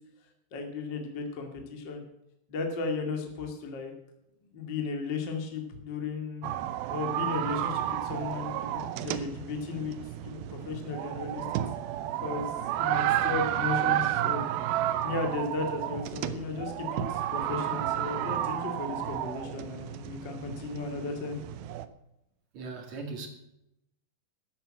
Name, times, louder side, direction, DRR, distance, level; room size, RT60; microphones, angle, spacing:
voice 1, 0.5-2.0 2.5-3.9 4.5-6.5 6.9-11.6 12.2-14.5 15.0-21.4, left 4 dB, 35° left, 2.0 m, -35 dB
sound 1, 6.4-21.9, right 12 dB, 80° right, 2.2 m, -31 dB
voice 2, 22.5-23.3, right 3 dB, 50° right, 2.7 m, -38 dB
13.5 x 8.8 x 7.7 m
omnidirectional pair, 5.1 m